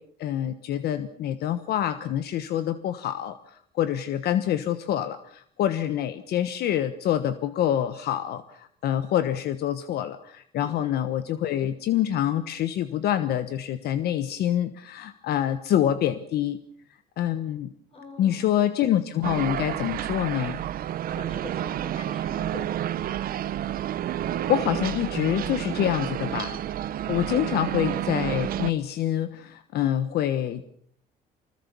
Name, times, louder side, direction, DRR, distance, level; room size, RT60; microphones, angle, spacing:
voice 1, 0.2-16.6 17.2-17.7 18.2-20.6 24.5-26.6 27.1-30.6, left 11 dB, 70° left, 11 dB, 1.2 m, -26 dB
voice 2, 10.6-10.9 17.9-18.6 21.1-23.1, left 2 dB, 35° left, 6 dB, 6.5 m, -44 dB
sound 1, 19.2-28.7, right 11 dB, 60° right, 1.0 m, -30 dB
25.0 x 20.0 x 7.0 m, 0.64 s
cardioid pair, 110°, 17 cm